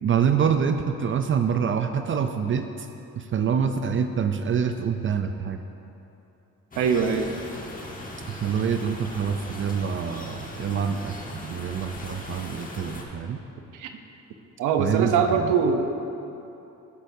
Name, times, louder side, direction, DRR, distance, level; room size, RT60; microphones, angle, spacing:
voice 1, 0.0-2.9 3.2-5.6 8.3-11.1 11.4-13.4 14.8-15.5, right 7 dB, 40° right, 7 dB, 0.5 m, -26 dB
sound 1, 6.7-13.0, left 1 dB, 25° left, 1.4 m, -39 dB
voice 2, 6.8-7.3 13.7-13.9 14.6-15.9, right 6 dB, 90° right, 6 dB, 0.8 m, -22 dB
15.5 x 8.2 x 2.7 m, 2.9 s
cardioid pair, 90°, 30 cm